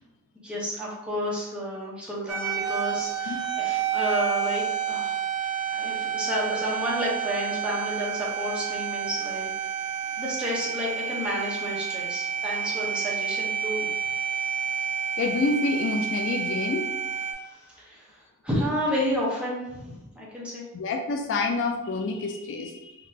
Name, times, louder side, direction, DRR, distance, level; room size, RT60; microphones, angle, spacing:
voice 1, 0.4-9.5 10.2-13.9 17.4-20.6, equal, 5° right, -6 dB, 0.8 m, -31 dB
sound 1, 2.3-17.3, right 8 dB, 80° right, 0.5 m, -29 dB
voice 2, 15.2-16.9 20.7-23.0, left 3 dB, 55° left, 4 dB, 0.3 m, -27 dB
3.6 x 2.8 x 2.7 m, 0.92 s
head